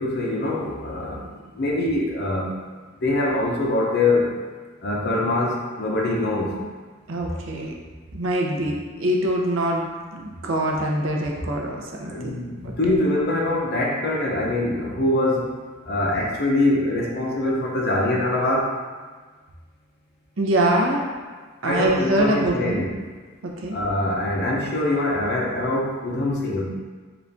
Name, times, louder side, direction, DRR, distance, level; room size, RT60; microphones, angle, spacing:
voice 1, 0.0-2.6 3.0-4.3 4.8-6.6 12.0-15.5 15.9-18.8 21.6-22.9 23.7-26.6, left 2 dB, 55° left, -2 dB, 0.6 m, -23 dB
voice 2, 7.1-7.7 8.1-12.3 12.6-12.7 20.4-21.0 21.6-22.8 23.4-23.8, right 1 dB, 75° right, 0 dB, 0.6 m, -24 dB
3.9 x 2.5 x 3.4 m, 1.4 s
head